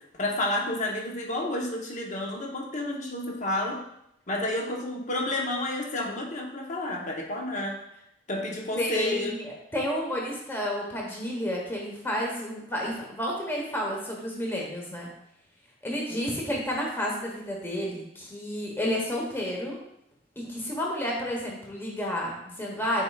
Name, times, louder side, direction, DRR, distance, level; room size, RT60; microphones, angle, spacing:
voice 1, 0.0-3.8 4.3-7.8 8.3-9.3 16.1-16.2, left 1 dB, 40° left, -1 dB, 1.0 m, -30 dB
voice 2, 8.8-15.1 15.8-19.8 20.4-23.0, equal, 10° left, -2 dB, 1.1 m, -31 dB
9.6 x 4.5 x 2.4 m, 0.79 s
head